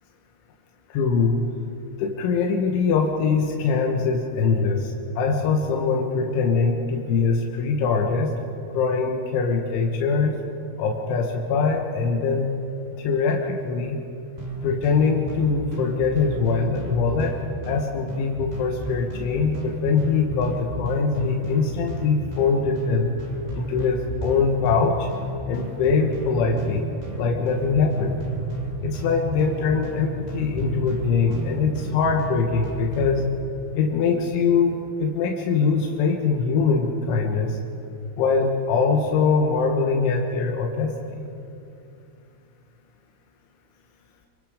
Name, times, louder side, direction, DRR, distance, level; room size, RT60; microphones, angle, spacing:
voice 1, 0.9-1.4 2.0-8.3 8.7-10.4 10.8-12.5 13.0-14.0 14.6-17.4 17.7-23.1 23.5-25.1 25.5-26.9 27.2-28.2 28.8-33.3 33.7-37.6 38.2-41.2, left 5 dB, 85° left, 1 dB, 3.9 m, -23 dB
sound 1, 14.4-33.2, right 1 dB, 10° right, 2.1 m, -32 dB
26.5 x 23.5 x 5.1 m, 2.6 s
omnidirectional pair, 5.3 m